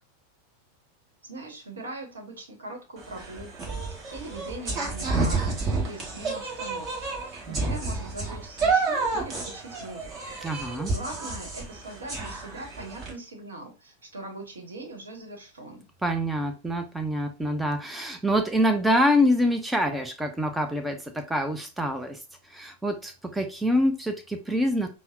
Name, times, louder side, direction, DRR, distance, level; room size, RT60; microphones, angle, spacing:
voice 1, 1.2-15.9, right 2 dB, 70° right, 2 dB, 1.0 m, -41 dB
sound 1, 3.0-13.1, right 3 dB, 30° right, 1.2 m, -30 dB
voice 2, 10.4-10.9 16.0-22.2 22.5-24.9, equal, 5° right, 6 dB, 0.4 m, -26 dB
5.4 x 2.0 x 2.4 m, 0.30 s
figure-of-eight pair, 90°, 0 cm